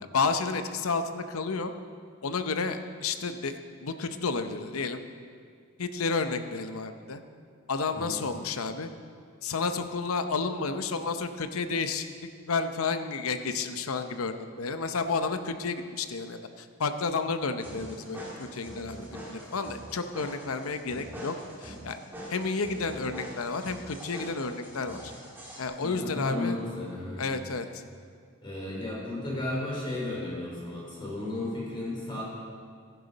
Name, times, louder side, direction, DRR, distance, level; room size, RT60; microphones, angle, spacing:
voice 1, 0.0-1.7 2.2-5.0 5.8-7.2 7.7-8.9 9.4-12.1 12.5-21.3 21.6-22.0 22.3-25.1 25.6-26.6 27.2-27.8, left 4 dB, 80° left, 9 dB, 0.7 m, -31 dB
sound 1, 17.6-25.6, equal, 10° right, 2.5 m, -43 dB
voice 2, 25.8-27.2 28.4-32.2, left 2 dB, 25° left, -4 dB, 3.7 m, -34 dB
14.0 x 10.5 x 4.1 m, 2.1 s
head